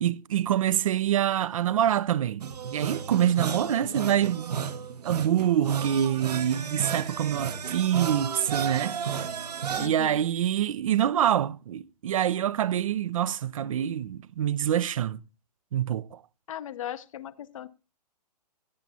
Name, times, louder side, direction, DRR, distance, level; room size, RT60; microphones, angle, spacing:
voice 1, 0.0-4.5 5.0-9.0 9.8-15.2 15.7-16.2, right 10 dB, 55° right, 0.5 m, -26 dB
sound 1, 2.4-9.9, right 7 dB, 70° right, 1.1 m, -33 dB
voice 2, 3.4-4.1 9.8-10.2 16.5-17.7, left 11 dB, 50° left, 0.7 m, -39 dB
16.0 x 9.1 x 2.7 m
figure-of-eight pair, 130°, 21 cm